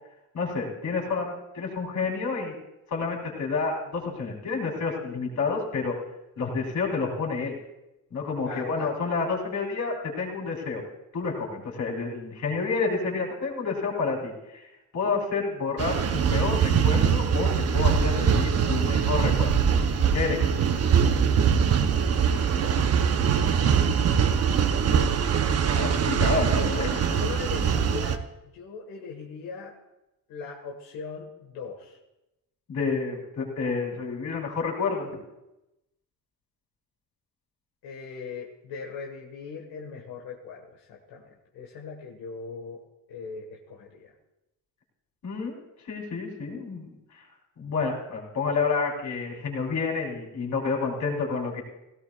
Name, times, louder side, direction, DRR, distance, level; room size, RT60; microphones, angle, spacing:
voice 1, 0.3-2.5 2.9-5.9 6.4-7.6 8.1-10.8 11.1-14.7 14.9-19.6 20.1-20.7 25.7-27.1 32.7-35.2 45.2-46.9 47.6-51.6, left 4 dB, 55° left, 0 dB, 4.0 m, -29 dB
voice 2, 8.4-8.9 22.3-23.4 26.6-28.2 28.5-29.8 30.3-32.0 37.8-44.1, left 5 dB, 85° left, -1 dB, 1.8 m, -40 dB
sound 1, 15.8-28.2, right 7 dB, 45° right, 0.9 m, -23 dB
17.0 x 17.0 x 2.5 m, 0.93 s
cardioid pair, 130°, 34 cm